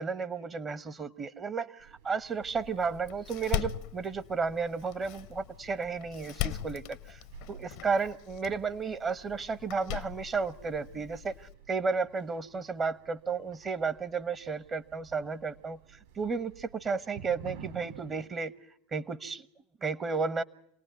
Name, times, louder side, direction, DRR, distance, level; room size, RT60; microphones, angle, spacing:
voice 1, 0.0-7.2 7.5-18.5 18.9-19.5 19.8-20.4, right 5 dB, 30° right, 15 dB, 1.1 m, -33 dB
sound 1, 1.8-18.3, right 7 dB, 70° right, 5.9 m, -54 dB
Door, 2.5-11.5, left 13 dB, 60° left, 0.9 m, -40 dB
27.0 x 18.5 x 9.3 m, 0.70 s
hypercardioid pair, 85°, 0 cm